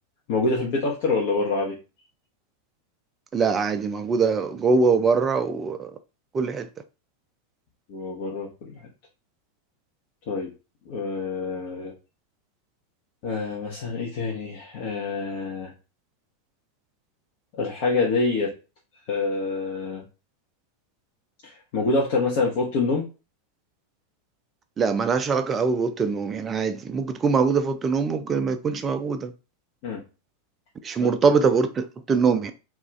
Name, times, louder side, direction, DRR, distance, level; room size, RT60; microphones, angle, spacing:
voice 1, 0.3-1.8 7.9-8.7 10.3-10.5 10.9-11.9 13.2-15.7 17.5-18.5 19.1-20.1 21.4-23.1 29.8-30.0 31.0-31.1, left 3 dB, 45° left, 0.7 m, -26 dB
voice 2, 3.3-5.9 6.3-6.7 24.8-29.3 30.8-32.5, right 5 dB, 20° right, 0.3 m, -23 dB
2.4 x 2.3 x 3.1 m
figure-of-eight pair, 90°, 0 cm